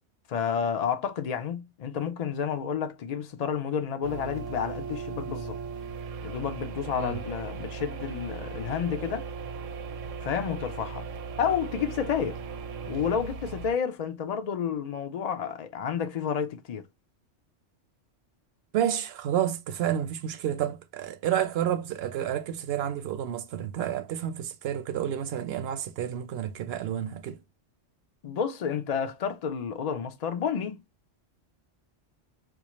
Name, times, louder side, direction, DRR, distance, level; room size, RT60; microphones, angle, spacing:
voice 1, 0.3-5.6 6.2-9.3 10.2-11.1 11.4-12.4 12.9-16.9 28.2-30.8, left 7 dB, 75° left, 0.3 m, -30 dB
sound 1, 4.0-13.7, right 5 dB, 85° right, 1.0 m, -38 dB
voice 2, 18.7-27.4, right 10 dB, 65° right, 0.7 m, -30 dB
4.4 x 2.4 x 2.9 m
omnidirectional pair, 1.3 m